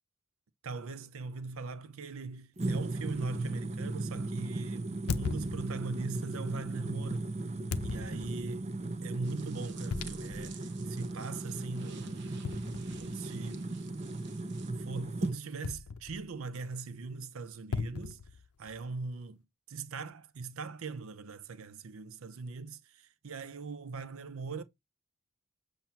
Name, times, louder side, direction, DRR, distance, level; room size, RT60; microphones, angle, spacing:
voice 1, 0.6-7.3 7.8-8.7 9.0-12.3 13.0-13.8 14.8-18.2 18.6-19.4 19.7-24.6, right 4 dB, 70° right, 0.6 m, -41 dB
sound 1, 2.6-15.4, right 2 dB, 30° right, 0.6 m, -37 dB
sound 2, 3.1-3.3 5.1-6.1 7.7-8.5 9.9-10.6 11.0-11.1 12.4-13.4 15.6-16.4 17.7-18.8, left 5 dB, 80° left, 0.6 m, -38 dB
sound 3, 9.2-14.7, right 8 dB, 50° right, 0.9 m, -55 dB
7.4 x 2.8 x 5.7 m
head